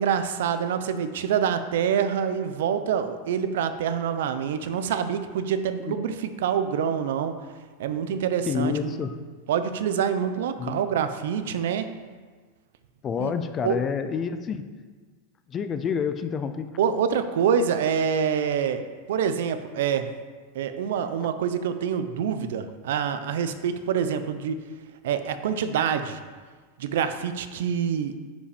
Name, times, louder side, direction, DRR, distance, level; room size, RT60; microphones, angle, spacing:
voice 1, 0.0-7.3 7.8-9.0 9.5-11.9 13.2-13.3 13.6-13.8 16.8-18.8 19.1-20.1 20.5-24.6 25.0-26.2 26.8-28.1, right 7 dB, 70° right, 10 dB, 0.6 m, -26 dB
voice 2, 8.5-9.1 10.6-10.8 13.0-14.6 15.5-16.7, left 7 dB, 20° left, 10 dB, 0.4 m, -28 dB
10.5 x 5.2 x 5.0 m, 1.5 s
supercardioid pair, 175°, 0 cm